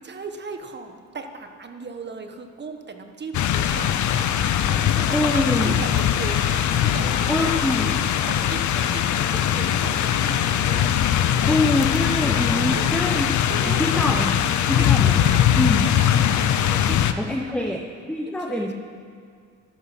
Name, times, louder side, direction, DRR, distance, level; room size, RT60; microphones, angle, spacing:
voice 1, 0.0-7.6 8.2-11.2 12.7-12.9 13.5-14.2 14.8-14.9 15.2-17.8 18.3-18.7, right 4 dB, 35° right, 5 dB, 1.5 m, -37 dB
sound 1, 3.3-17.1, left 10 dB, 70° left, 0.8 m, -21 dB
voice 2, 5.1-5.8 7.3-8.2 11.5-13.3 13.7-14.4 14.7-15.2 15.5-15.9 17.2-17.8 18.1-18.7, left 1 dB, 5° left, 2 dB, 0.9 m, -24 dB
13.0 x 11.0 x 6.0 m, 2.3 s
cardioid pair, 90°, 30 cm